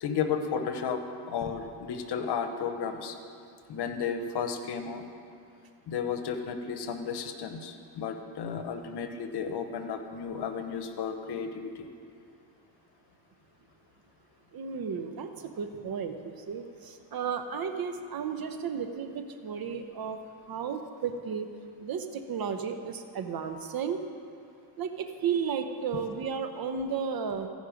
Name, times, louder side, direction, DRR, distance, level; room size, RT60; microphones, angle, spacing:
voice 1, 0.0-3.1 3.7-5.0 5.9-11.7, left 6 dB, 60° left, 7 dB, 1.0 m, -33 dB
voice 2, 14.5-15.3 15.6-20.2 20.5-21.5 21.8-24.0 24.8-27.5, right 6 dB, 55° right, 7 dB, 0.9 m, -33 dB
15.5 x 5.4 x 5.1 m, 2.4 s
cardioid pair, 80°, 45 cm